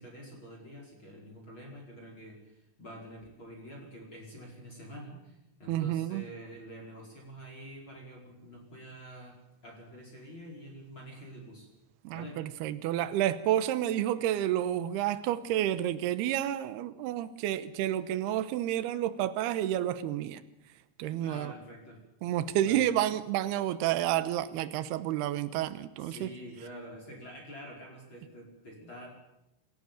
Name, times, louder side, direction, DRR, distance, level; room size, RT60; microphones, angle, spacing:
voice 1, 0.0-9.4 9.6-11.7 12.1-12.5 21.2-22.0 22.6-22.9 26.0-29.1, equal, 25° left, 0 dB, 5.2 m, -47 dB
voice 2, 5.7-6.2 12.0-20.4 21.0-21.5 22.2-26.3, right 12 dB, 90° right, 11 dB, 2.3 m, -30 dB
27.5 x 14.5 x 8.9 m, 0.88 s
omnidirectional pair, 5.9 m